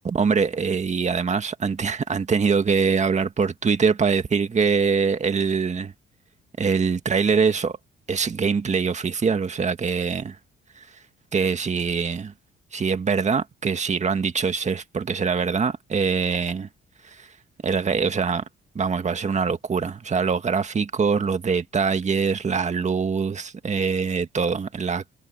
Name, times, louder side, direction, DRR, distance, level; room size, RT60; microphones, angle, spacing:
voice 1, 0.1-5.9 6.6-7.8 8.1-10.4 11.3-12.3 12.7-16.7 17.6-18.4 18.8-25.0, right 5 dB, 35° right, 1.9 m, -23 dB
cardioid pair, 90°, 20 cm